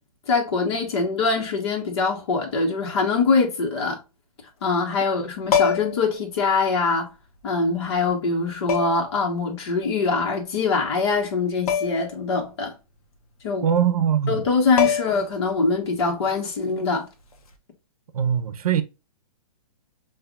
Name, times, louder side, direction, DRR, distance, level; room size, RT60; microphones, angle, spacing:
voice 1, 0.3-4.0 4.6-7.1 7.4-12.7 13.4-13.7 14.3-17.1, left 4 dB, 45° left, 1.4 m, -23 dB
sound 1, 5.5-6.1 7.4-7.5 8.7-9.1 11.7-12.1 12.4-12.5 14.4-14.5 14.8-15.4 17.3-17.5, left 7 dB, 90° left, 1.0 m, -23 dB
voice 2, 13.6-14.4 18.1-18.8, right 8 dB, 80° right, 0.6 m, -21 dB
5.6 x 2.6 x 2.4 m
hypercardioid pair, 170°, 18 cm